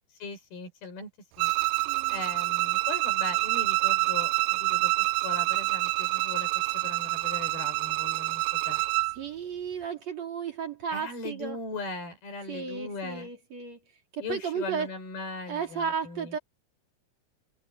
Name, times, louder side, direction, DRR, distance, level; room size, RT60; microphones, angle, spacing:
voice 1, 0.2-1.1 1.4-1.5 2.1-8.8 10.9-13.3 14.2-16.4, left 3 dB, 80° left, 7.3 m, -39 dB
Bowed string instrument, 1.4-9.2, right 22 dB, 90° right, 2.5 m, -27 dB
voice 2, 1.9-2.2 9.2-11.6 12.5-13.8 14.1-14.9 15.5-16.4, right 6 dB, 45° right, 4.7 m, -34 dB
omnidirectional pair, 4.3 m